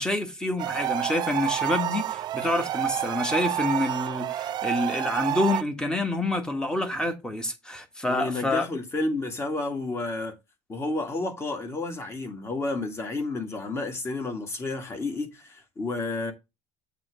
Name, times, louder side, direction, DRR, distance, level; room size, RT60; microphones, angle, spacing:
voice 1, 0.0-8.7, left 2 dB, 5° left, 1.5 m, -27 dB
sound 1, 0.6-5.6, right 12 dB, 35° right, 0.3 m, -29 dB
voice 2, 8.1-10.3 10.7-16.3, left 2 dB, 20° left, 2.1 m, -31 dB
7.5 x 3.4 x 6.2 m
cardioid pair, 140°, 12 cm